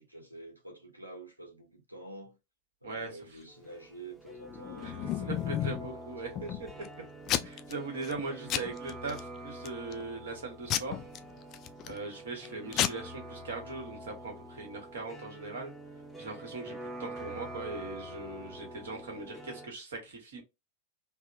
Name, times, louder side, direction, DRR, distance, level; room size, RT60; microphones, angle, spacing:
voice 1, 0.0-2.4 2.8-6.8 12.4-12.6, right 1 dB, 85° right, 0.9 m, -49 dB
voice 2, 2.8-3.4 4.8-5.0 5.2-6.5 7.4-11.0 11.9-15.7 16.2-20.4, right 3 dB, 65° right, 1.2 m, -40 dB
sound 1, 3.5-19.7, right 1 dB, ahead, 0.7 m, -46 dB
Packing tape duct tape / Tearing, 4.5-5.9 6.4-6.9 7.3-7.7 8.0-8.2 8.5-9.2 9.7-10.0 10.7-12.0 12.4-12.5 12.7-12.9, left 11 dB, 35° left, 0.3 m, -32 dB
3.4 x 2.1 x 2.5 m
figure-of-eight pair, 90°, 0 cm